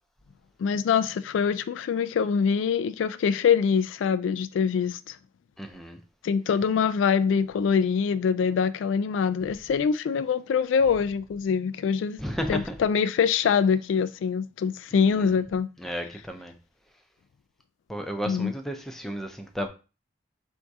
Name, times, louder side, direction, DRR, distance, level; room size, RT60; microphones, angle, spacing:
voice 1, 0.6-5.2 6.2-12.2 12.5-15.7 18.3-18.5, left 6 dB, 80° left, 0.3 m, -24 dB
voice 2, 5.6-6.0 12.2-12.7 14.9-15.4 15.8-16.5 17.9-19.7, equal, ahead, 0.5 m, -33 dB
3.5 x 2.7 x 4.6 m
head